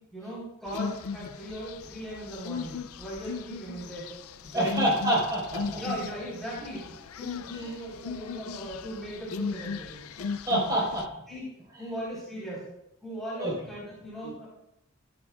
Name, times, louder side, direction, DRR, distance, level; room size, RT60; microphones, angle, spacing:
voice 1, 0.1-4.1 4.4-4.7 5.6-10.0 11.3-11.5 11.8-12.7 13.0-14.5, equal, ahead, -9 dB, 4.1 m, -38 dB
sound 1, 0.7-11.1, left 5 dB, 85° left, 0.5 m, -37 dB
voice 2, 4.5-5.6 7.5-7.7 10.5-11.0 11.8-11.9 13.4-13.5 14.2-14.3, right 1 dB, 20° right, -4 dB, 4.7 m, -27 dB
14.0 x 11.0 x 2.4 m, 0.83 s
head